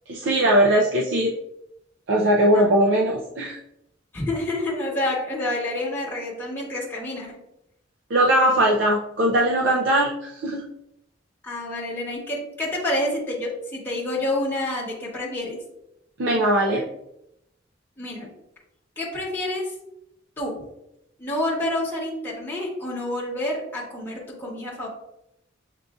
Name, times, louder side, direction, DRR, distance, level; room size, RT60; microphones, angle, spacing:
voice 1, 0.1-1.3 2.1-3.6 8.1-10.6 16.2-16.8, right 1 dB, 80° right, -1 dB, 0.5 m, -20 dB
voice 2, 2.5-3.0 4.1-7.4 11.4-15.6 18.0-18.3 19.0-19.7 20.4-20.6 21.2-24.9, left 1 dB, 10° left, -5 dB, 1.0 m, -28 dB
7.3 x 2.6 x 2.3 m, 0.82 s
head